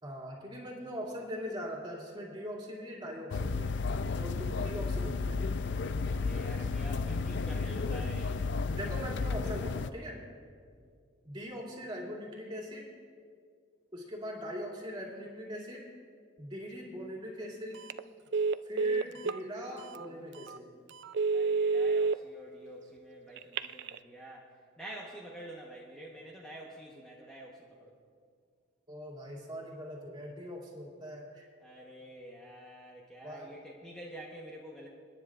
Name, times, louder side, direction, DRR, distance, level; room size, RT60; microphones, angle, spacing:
voice 1, 0.0-3.7 4.2-5.4 8.8-10.2 11.2-12.9 13.9-15.9 16.4-17.8 18.6-20.7 28.9-31.4 33.2-33.5, equal, 25° right, -3 dB, 2.5 m, -41 dB
sound 1, 3.3-9.9, left 4 dB, 65° left, 0.5 m, -33 dB
voice 2, 6.1-8.4 10.7-10.9 21.3-28.0 31.6-34.9, right 1 dB, 5° left, -4 dB, 1.0 m, -48 dB
Telephone, 17.7-18.0 18.3-19.4 19.9-20.0 20.5-20.6 21.0-22.1 23.4-24.0, right 4 dB, 60° right, 0.3 m, -29 dB
28.5 x 10.0 x 2.5 m, 2.1 s
head